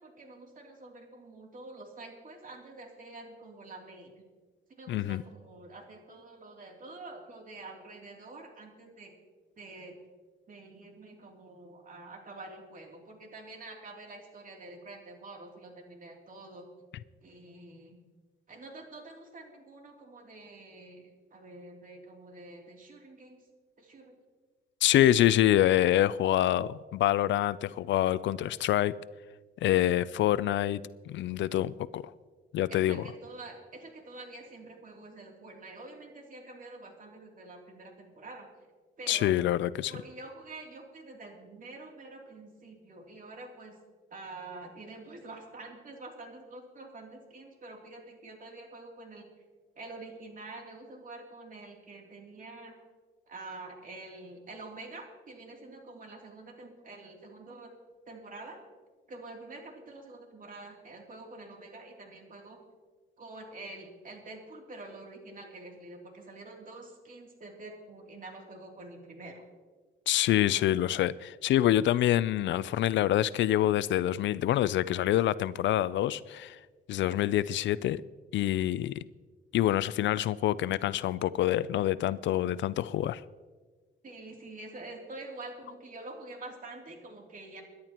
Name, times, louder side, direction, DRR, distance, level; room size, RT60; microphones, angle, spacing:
voice 1, 0.0-4.1 4.8-9.1 9.6-10.0 10.5-16.7 17.2-18.0 18.5-23.4 23.8-24.2 32.7-38.5 39.0-39.4 39.9-43.7 44.1-49.3 49.7-52.7 53.3-57.7 58.1-58.6 59.1-62.6 63.2-69.4 77.0-77.2 84.0-87.6, right 2 dB, 45° right, 2.9 m, -47 dB
voice 2, 4.9-5.2 24.8-28.9 29.6-32.0 32.5-33.1 39.1-39.9 70.1-76.6 76.9-78.0 78.3-79.0 79.5-83.2, left 13 dB, 70° left, 0.4 m, -26 dB
23.0 x 11.0 x 3.0 m
cardioid pair, 90°, 20 cm